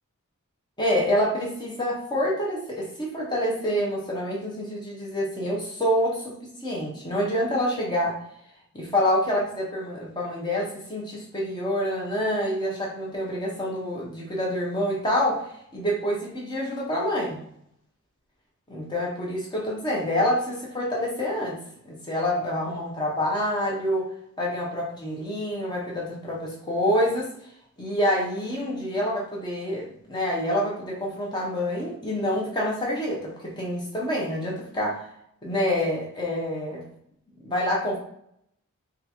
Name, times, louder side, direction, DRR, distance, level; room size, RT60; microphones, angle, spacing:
voice 1, 0.8-6.3 6.6-8.2 8.7-17.4 18.7-21.6 21.9-24.1 24.4-27.3 27.8-35.1 35.4-36.8 37.4-38.0, equal, 20° left, -3 dB, 0.6 m, -27 dB
3.6 x 2.3 x 2.9 m, 0.71 s
head